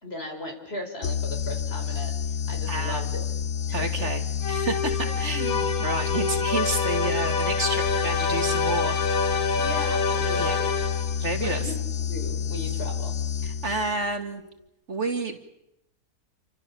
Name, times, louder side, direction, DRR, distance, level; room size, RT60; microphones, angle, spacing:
voice 1, 0.0-3.3 3.7-4.1 5.0-5.2 6.1-6.3 9.6-10.8 11.3-11.8 12.1-13.2, left 1 dB, 45° left, 3 dB, 5.4 m, -37 dB
sound 1, 1.0-14.2, left 8 dB, 60° left, 1.6 m, -29 dB
voice 2, 2.7-3.0 3.7-4.2 4.5-9.0 10.4-10.6 11.2-11.7 13.4-14.4 14.9-15.4, right 3 dB, 55° right, 6 dB, 2.4 m, -30 dB
sound 2, 4.4-11.3, left 4 dB, 80° left, 1.9 m, -27 dB
29.0 x 25.5 x 7.0 m, 0.84 s
omnidirectional pair, 1.5 m